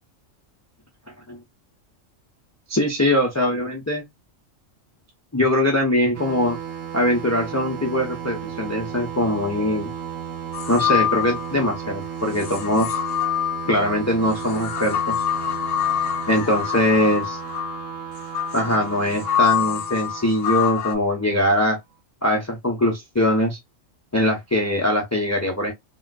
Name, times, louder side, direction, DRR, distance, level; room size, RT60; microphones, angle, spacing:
voice 1, 2.7-4.0 5.3-6.6 6.9-9.9 10.7-13.0 13.7-15.2 16.3-17.4 18.5-21.8 22.2-23.6 24.1-25.7, left 1 dB, 20° left, 0.4 m, -22 dB
sound 1, 6.1-21.5, right 8 dB, 75° right, 1.0 m, -34 dB
sound 2, 10.5-11.8 12.3-20.9, left 10 dB, 75° left, 0.9 m, -26 dB
3.6 x 2.2 x 2.4 m
omnidirectional pair, 1.3 m